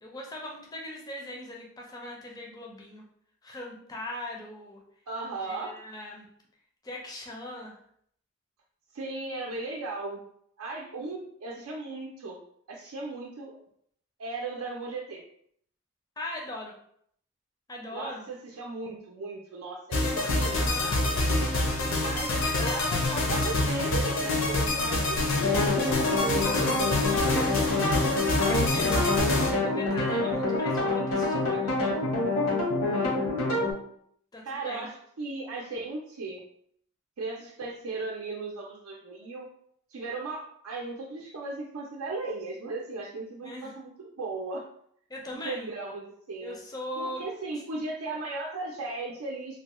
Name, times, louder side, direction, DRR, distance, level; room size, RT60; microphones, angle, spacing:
voice 1, 0.0-3.0 3.4-4.8 5.5-6.3 6.8-7.8 16.2-16.7 17.7-18.3 20.1-21.0 22.3-23.7 26.8-27.2 28.7-28.9 29.6-32.0 34.3-34.9 43.4-43.7 45.1-45.7 46.4-47.2, left 1 dB, 15° left, -1 dB, 0.4 m, -39 dB
voice 2, 5.1-5.8 8.9-10.2 10.6-12.4 12.7-13.6 14.2-15.2 17.9-21.5 22.0-22.3 22.6-23.0 23.3-26.0 28.3-29.0 34.4-36.4 37.2-39.5 39.9-44.6 45.4-46.6 47.0-49.6, right 3 dB, 80° right, -2 dB, 0.5 m, -37 dB
sound 1, 19.9-29.5, left 2 dB, 65° left, 0.6 m, -27 dB
sound 2, 25.4-33.7, left 2 dB, 85° left, 1.1 m, -27 dB
3.1 x 2.2 x 2.9 m, 0.66 s
head